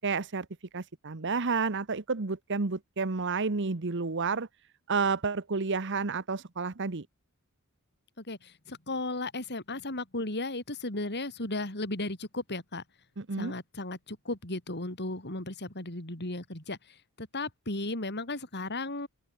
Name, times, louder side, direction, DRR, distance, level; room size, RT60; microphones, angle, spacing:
voice 1, 0.0-0.5 0.7-4.5 4.9-7.1 13.2-13.5, right 4 dB, 55° right, 1.1 m, -30 dB
voice 2, 8.2-12.8 13.4-19.1, left 2 dB, 50° left, 5.1 m, -35 dB
open air
head